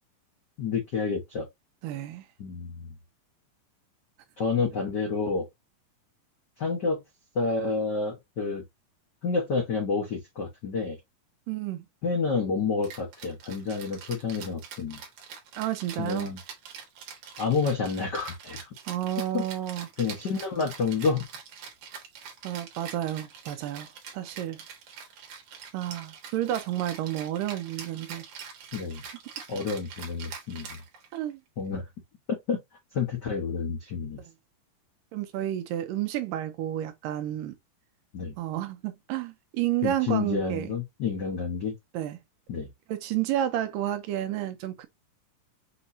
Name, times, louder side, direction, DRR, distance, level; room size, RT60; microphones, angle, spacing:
voice 1, 0.6-1.5 2.4-2.9 4.4-5.5 6.6-7.0 7.3-8.6 9.2-11.0 12.0-15.0 16.0-16.4 17.4-18.7 19.3-19.4 20.0-21.2 28.7-29.0 29.5-30.8 31.6-31.8 32.5-32.6 32.9-34.2 38.1-38.3 39.8-41.7 42.5-42.7, left 4 dB, 90° left, 0.9 m, -29 dB
voice 2, 1.8-2.3 11.5-11.9 15.6-16.3 18.9-19.9 22.4-23.9 24.1-24.6 25.7-28.2 31.1-31.4 35.1-37.5 38.4-40.7 41.9-42.2 42.9-44.9, right 12 dB, 85° right, 2.3 m, -31 dB
Rattle (instrument), 12.8-31.3, right 7 dB, 65° right, 2.5 m, -44 dB
6.3 x 2.9 x 2.7 m
omnidirectional pair, 3.9 m